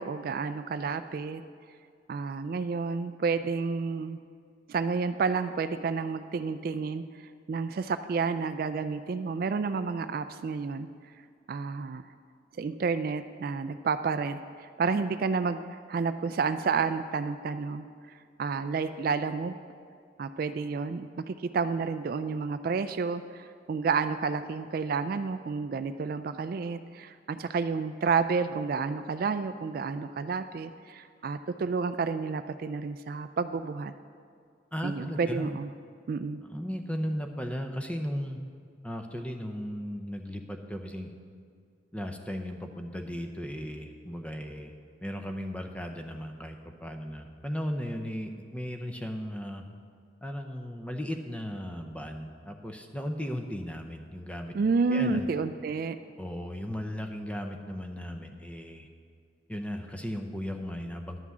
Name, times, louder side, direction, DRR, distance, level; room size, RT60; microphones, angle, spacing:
voice 1, 0.0-1.4 2.1-4.2 4.7-10.9 11.5-12.0 12.6-19.6 20.2-33.9 34.8-35.7 36.1-36.4 54.5-56.0, right 5 dB, 50° right, 11 dB, 0.3 m, -30 dB
voice 2, 34.7-35.5 36.5-38.4 38.8-41.1 41.9-44.8 45.0-49.6 50.2-54.5 54.9-55.3 56.2-58.9 59.5-61.2, equal, 5° left, 4 dB, 0.6 m, -36 dB
11.0 x 6.0 x 7.3 m, 2.2 s
head